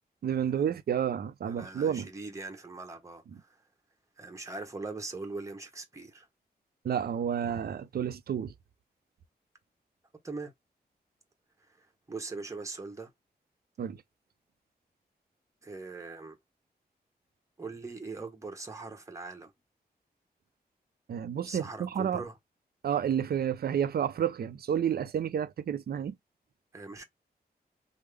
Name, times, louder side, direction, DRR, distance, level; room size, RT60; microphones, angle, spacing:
voice 1, 0.2-2.1 6.8-8.5 13.8-14.0 21.1-22.2 22.8-26.1, right 8 dB, 70° right, 0.5 m, -30 dB
voice 2, 1.4-3.6 4.2-6.3 10.2-10.5 11.7-13.1 15.6-16.4 17.6-19.5 21.5-22.3 26.7-27.0, right 3 dB, 20° right, 0.9 m, -41 dB
3.5 x 2.0 x 3.3 m
wide cardioid pair, 120°, 17 cm